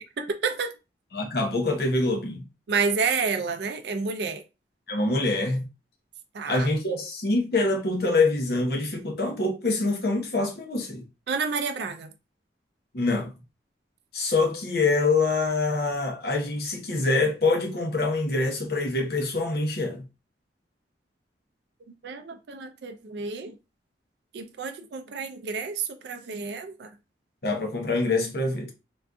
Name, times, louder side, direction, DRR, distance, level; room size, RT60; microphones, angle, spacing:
voice 1, 0.2-0.7 2.7-4.4 6.3-6.7 11.3-12.1 22.0-23.6 24.3-26.9, right 5 dB, 70° right, 0.4 m, -29 dB
voice 2, 1.1-2.4 4.9-5.7 6.5-11.0 12.9-13.4 14.1-20.0 27.4-28.7, left 3 dB, 60° left, 0.8 m, -25 dB
3.7 x 2.5 x 2.3 m
head